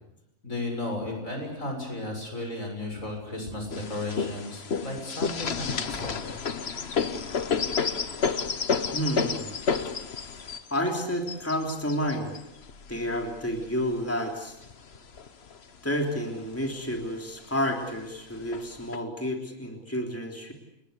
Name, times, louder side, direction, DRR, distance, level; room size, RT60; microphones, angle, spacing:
voice 1, 0.4-6.4, left 2 dB, 75° left, 3 dB, 7.3 m, -34 dB
sound 1, 3.7-14.0 14.6-15.6 16.0-16.1 16.3-17.0 17.8-17.9 18.5-19.0, left 5 dB, 50° left, 1.4 m, -30 dB
voice 2, 8.9-9.5 10.7-12.4 12.9-14.6 15.8-20.5, equal, 10° left, 2 dB, 3.4 m, -30 dB
29.5 x 20.0 x 8.2 m, 0.84 s
omnidirectional pair, 1.4 m